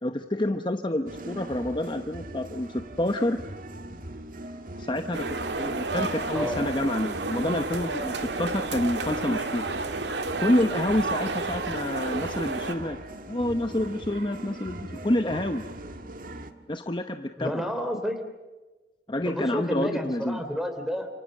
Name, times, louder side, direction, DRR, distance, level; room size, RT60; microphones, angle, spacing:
voice 1, 0.0-3.4 4.8-5.3 5.6-9.7 10.4-13.0 13.3-15.6 16.7-17.6 19.1-20.4, left 1 dB, 25° left, 7 dB, 0.9 m, -28 dB
sound 1, 1.1-16.5, right 1 dB, 50° right, 1.7 m, -40 dB
sound 2, 5.1-12.7, right 3 dB, 90° right, 2.0 m, -31 dB
voice 2, 17.4-18.2 19.2-21.1, equal, ahead, 6 dB, 3.3 m, -30 dB
30.0 x 28.0 x 6.6 m, 1.2 s
head